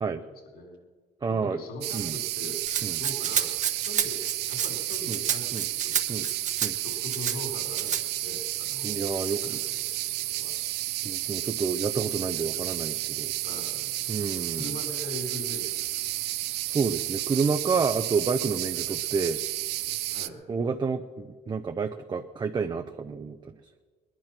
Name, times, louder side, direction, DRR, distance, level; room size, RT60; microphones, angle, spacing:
voice 1, 0.2-0.8 1.3-2.6 3.0-3.6 3.8-6.3 6.8-8.9 9.4-10.5 13.4-14.0 14.5-15.7 20.1-20.4, left 1 dB, 65° left, 3 dB, 5.0 m, -41 dB
voice 2, 1.2-1.6 1.9-2.2 2.8-3.0 5.1-5.2 5.5-5.6 6.1-6.3 6.6-6.8 8.8-9.6 11.0-13.3 14.1-14.8 16.7-19.4 20.5-23.5, right 5 dB, 25° right, 6 dB, 0.7 m, -29 dB
sound 1, 1.8-20.3, right 16 dB, 80° right, 0.6 m, -32 dB
Rattle (instrument), 2.7-7.4 7.7-8.0, right 8 dB, 45° right, 1.2 m, -30 dB
20.0 x 11.5 x 6.0 m, 1.5 s
cardioid pair, 110°, 17 cm